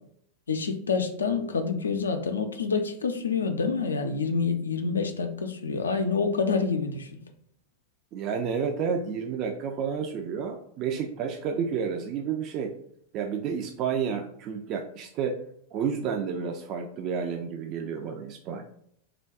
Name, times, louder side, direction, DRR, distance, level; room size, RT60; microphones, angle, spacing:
voice 1, 0.5-7.2, left 5 dB, 70° left, 6 dB, 0.3 m, -27 dB
voice 2, 8.1-12.7 13.1-15.4 15.7-18.6, right 6 dB, 35° right, 4 dB, 0.3 m, -30 dB
3.3 x 2.2 x 3.6 m, 0.68 s
figure-of-eight pair, 90°, 0 cm